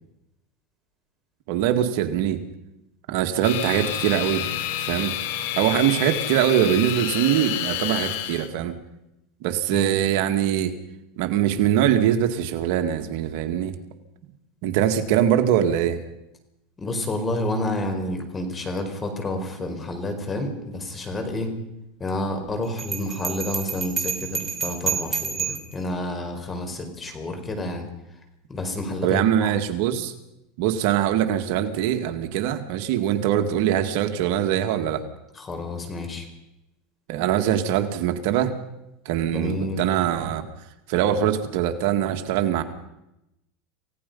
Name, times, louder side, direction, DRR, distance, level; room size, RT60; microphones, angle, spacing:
voice 1, 1.5-2.4 3.1-4.5 4.8-5.1 5.6-8.7 9.4-10.7 11.2-13.7 14.6-16.0 29.0-30.1 30.6-35.0 37.1-38.5 39.1-40.4 40.9-42.6, right 10 dB, 65° right, 6 dB, 2.0 m, -22 dB
sound 1, 3.4-8.5, left 12 dB, 70° left, 2.6 m, -29 dB
voice 2, 16.8-21.5 22.0-27.9 28.5-29.5 35.3-36.3 39.3-39.8, left 1 dB, 20° left, 6 dB, 4.7 m, -29 dB
Bell, 22.8-25.7, right 6 dB, 15° right, 4.0 m, -29 dB
28.0 x 17.0 x 5.5 m, 0.88 s
supercardioid pair, 140°, 0 cm